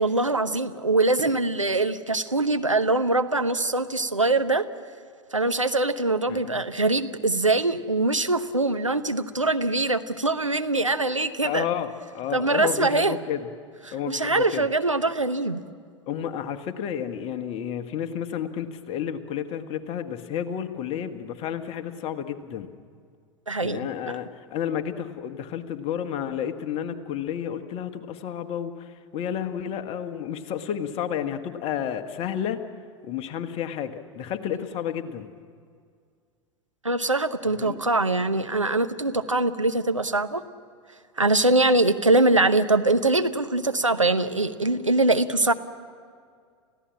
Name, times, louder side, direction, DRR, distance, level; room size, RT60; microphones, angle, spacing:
voice 1, 0.0-4.6 5.3-11.6 12.3-13.1 14.1-15.6 23.5-23.8 36.8-40.4 41.2-45.5, right 2 dB, 85° right, 9 dB, 1.0 m, -23 dB
voice 2, 6.3-6.6 11.4-13.5 13.9-14.7 16.1-22.7 23.6-32.6 33.0-35.3 37.6-37.8, left 9 dB, 40° left, 9 dB, 1.5 m, -31 dB
29.0 x 15.5 x 8.9 m, 2.1 s
figure-of-eight pair, 85°, 16 cm